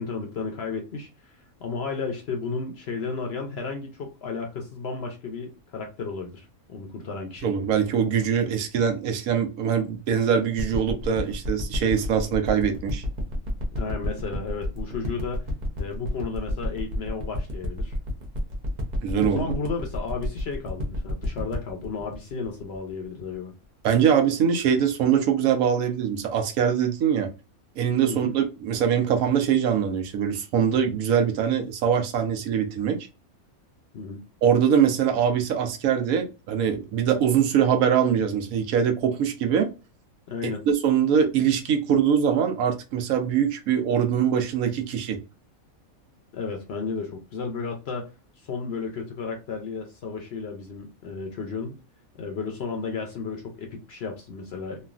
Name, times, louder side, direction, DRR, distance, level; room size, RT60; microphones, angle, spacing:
voice 1, 0.0-7.5 13.7-15.5 15.8-18.0 19.2-23.5 28.1-28.3 33.9-34.2 40.3-40.6 46.3-48.1 48.4-51.8 52.2-54.9, left 4 dB, 60° left, 0.7 m, -33 dB
voice 2, 7.4-13.0 19.0-19.4 23.8-27.3 27.8-33.0 34.4-39.7 40.4-45.2, right 8 dB, 80° right, 1.1 m, -23 dB
sound 1, 10.6-23.3 23.9-24.0, left 1 dB, 45° right, 0.6 m, -30 dB
3.2 x 2.3 x 2.4 m
omnidirectional pair, 1.5 m